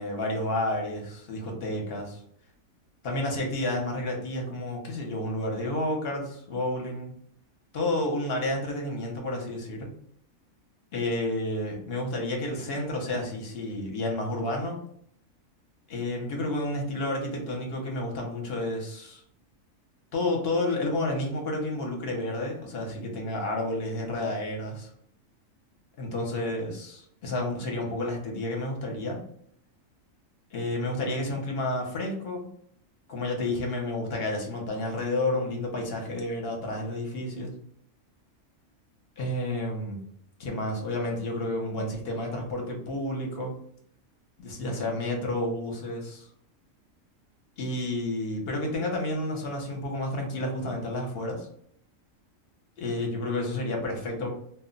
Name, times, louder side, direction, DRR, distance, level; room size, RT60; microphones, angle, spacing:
voice 1, 0.0-2.2 3.0-7.1 7.7-9.9 10.9-14.8 15.9-19.2 20.1-24.9 26.0-29.2 30.5-32.5 33.1-37.5 39.2-40.0 40.4-43.5 44.4-46.3 47.6-51.5 52.8-54.3, left 1 dB, 55° left, 1 dB, 0.8 m, -30 dB
2.3 x 2.1 x 3.7 m, 0.67 s
omnidirectional pair, 1.4 m